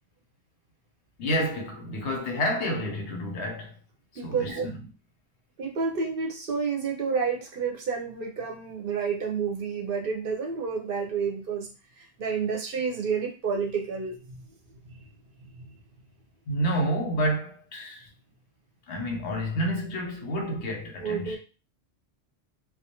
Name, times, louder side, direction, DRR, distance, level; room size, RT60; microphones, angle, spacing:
voice 1, 1.2-3.7 4.1-4.8 16.5-18.1 18.9-21.4, equal, 80° left, 1.0 m, -29 dB
voice 2, 4.2-4.7 5.6-11.7 12.2-14.2 21.0-21.4, right 5 dB, 60° right, 0.7 m, -29 dB
2.3 x 2.2 x 2.8 m
omnidirectional pair, 1.2 m